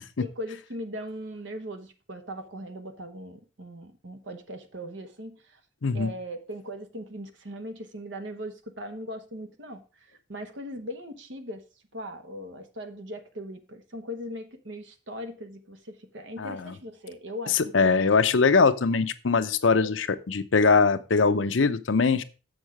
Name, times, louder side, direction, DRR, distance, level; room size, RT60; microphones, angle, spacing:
voice 1, 0.2-5.6 5.9-9.8 10.3-11.6 11.9-18.1 19.7-19.9, equal, 70° right, 1.1 m, -39 dB
voice 2, 5.8-6.1 16.4-16.7 17.5-22.2, left 4 dB, 75° left, 0.7 m, -22 dB
7.2 x 6.2 x 4.9 m
head